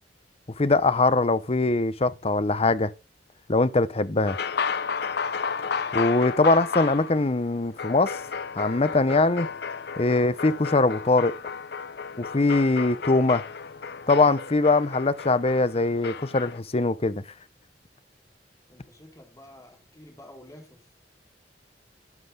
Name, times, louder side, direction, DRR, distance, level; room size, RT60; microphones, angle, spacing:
voice 1, 0.6-2.9 3.5-4.4 5.9-8.2 8.6-9.5 10.0-11.4 12.2-13.4 14.1-17.2, left 3 dB, 35° left, 0.8 m, -22 dB
sound 1, 4.3-16.6, left 5 dB, 65° left, 0.7 m, -33 dB
voice 2, 18.7-20.9, left 1 dB, 20° left, 4.0 m, -49 dB
12.0 x 7.7 x 3.8 m
head